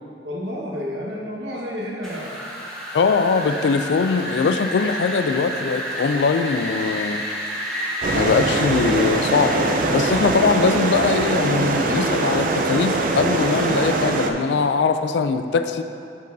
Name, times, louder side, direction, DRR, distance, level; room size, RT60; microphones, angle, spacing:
voice 1, 0.2-2.3, equal, 90° right, -4 dB, 1.3 m, -30 dB
Wind, 2.0-14.0, equal, 5° left, 1.1 m, -31 dB
voice 2, 2.9-7.2 8.1-15.8, left 5 dB, 75° left, 10 dB, 0.3 m, -21 dB
sound 1, 8.0-14.3, right 3 dB, 50° right, 0.4 m, -22 dB
9.3 x 5.3 x 2.6 m, 2.6 s
head